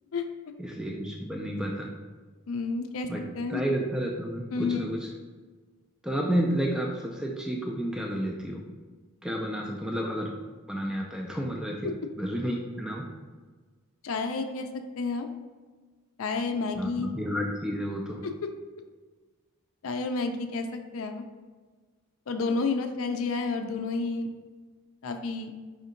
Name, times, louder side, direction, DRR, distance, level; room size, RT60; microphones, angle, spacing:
voice 1, 0.6-1.9 3.1-3.2 3.5-5.1 6.0-8.6 9.2-11.9 12.2-13.1 16.8-18.2, equal, 5° right, -1 dB, 0.3 m, -31 dB
voice 2, 2.5-3.1 3.3-3.6 4.5-4.9 14.0-14.7 15.0-15.3 16.2-17.1 19.8-21.2 22.3-24.3 25.0-25.5, left 4 dB, 65° left, 5 dB, 0.4 m, -30 dB
5.0 x 2.7 x 3.8 m, 1.4 s
head